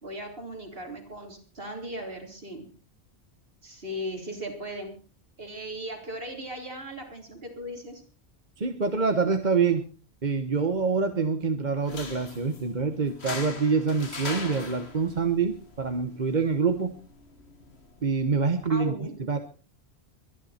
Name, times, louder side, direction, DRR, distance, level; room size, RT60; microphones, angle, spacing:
voice 1, 0.0-2.7 3.6-4.9 5.4-8.0 18.7-19.2, equal, 60° right, 2 dB, 4.0 m, -37 dB
voice 2, 8.6-9.8 10.2-16.9 18.0-18.9 19.3-19.4, right 5 dB, 45° right, 7 dB, 1.3 m, -26 dB
sound 1, 11.8-18.8, left 3 dB, 85° left, 2.2 m, -42 dB
23.5 x 11.0 x 4.3 m, 0.36 s
omnidirectional pair, 1.1 m